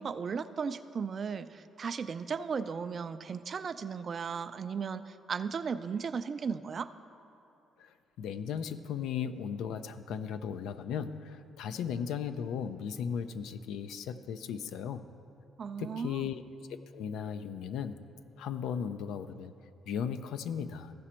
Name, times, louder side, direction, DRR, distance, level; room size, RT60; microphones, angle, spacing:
voice 1, 0.0-6.9 15.6-16.3, right 6 dB, 45° right, 12 dB, 0.3 m, -36 dB
voice 2, 7.8-15.1 15.8-16.4 16.9-18.0 18.4-19.5 19.9-20.9, left 7 dB, 85° left, 11 dB, 0.4 m, -36 dB
15.0 x 5.0 x 4.3 m, 2.8 s
cardioid pair, 90°, 0 cm